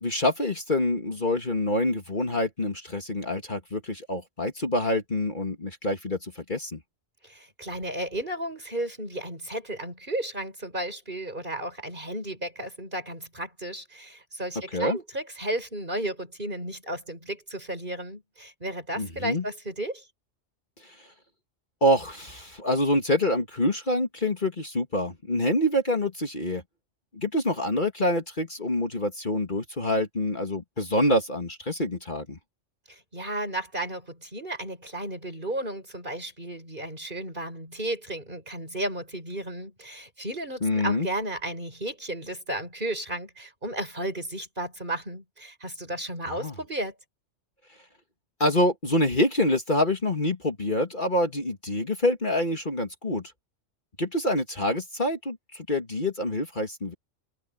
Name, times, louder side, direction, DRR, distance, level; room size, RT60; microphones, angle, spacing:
voice 1, 0.0-6.8 14.7-15.0 19.0-19.4 20.8-21.1 21.8-26.6 27.1-32.4 40.6-41.1 46.3-46.5 48.4-53.3 54.0-56.9, left 1 dB, 40° left, 2.3 m, -26 dB
voice 2, 7.2-20.0 32.9-46.9, right 1 dB, 40° right, 7.3 m, -34 dB
omnidirectional pair, 1.3 m